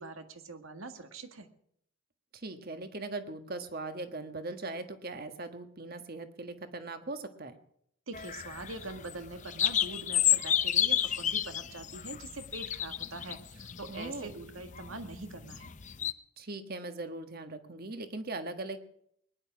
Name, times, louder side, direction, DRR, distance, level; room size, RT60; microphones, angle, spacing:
voice 1, 0.0-1.5 8.1-15.7, right 3 dB, 75° right, 8 dB, 1.8 m, -44 dB
voice 2, 2.3-7.6 13.9-14.4 16.4-18.8, right 2 dB, 45° right, 8 dB, 1.5 m, -40 dB
sound 1, 8.1-16.1, left 10 dB, 35° left, 0.6 m, -31 dB
21.0 x 10.5 x 6.1 m, 0.70 s
head